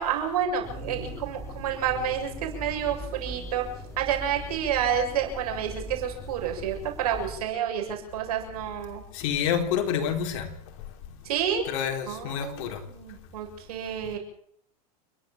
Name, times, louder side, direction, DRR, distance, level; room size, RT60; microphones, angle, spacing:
voice 1, 0.0-3.7 4.0-9.0 11.2-11.6 12.1-14.2, right 8 dB, 85° right, 7.4 m, -29 dB
sound 1, 0.6-7.4, right 1 dB, 15° left, 6.9 m, -40 dB
voice 2, 9.1-10.5 11.7-12.8, left 8 dB, 65° left, 4.0 m, -28 dB
29.5 x 12.0 x 7.8 m
supercardioid pair, 125°, 19 cm